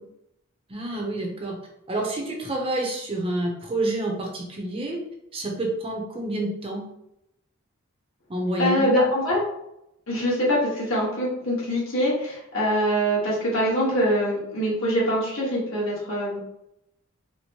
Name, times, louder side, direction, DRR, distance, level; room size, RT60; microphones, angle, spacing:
voice 1, 0.7-1.6 1.9-5.0 5.3-6.8 8.3-8.9, right 1 dB, 25° right, 0 dB, 0.6 m, -28 dB
voice 2, 8.6-9.4 10.1-16.4, equal, 70° left, -6 dB, 1.5 m, -24 dB
4.2 x 2.1 x 2.9 m, 0.82 s
head